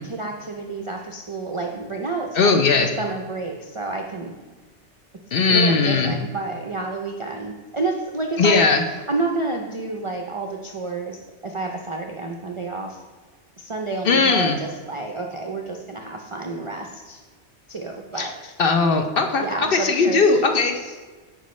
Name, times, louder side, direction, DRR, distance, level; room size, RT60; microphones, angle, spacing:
voice 1, 0.0-4.3 5.5-8.7 9.1-13.0 13.6-17.2 17.7-18.3 19.4-20.3, right 3 dB, 50° right, 2 dB, 0.4 m, -29 dB
voice 2, 2.3-2.9 5.3-6.1 8.4-8.8 14.0-14.6 18.2-18.3 18.6-20.9, left 4 dB, 60° left, 5 dB, 0.7 m, -19 dB
8.6 x 5.3 x 3.1 m, 1.3 s
omnidirectional pair, 1.2 m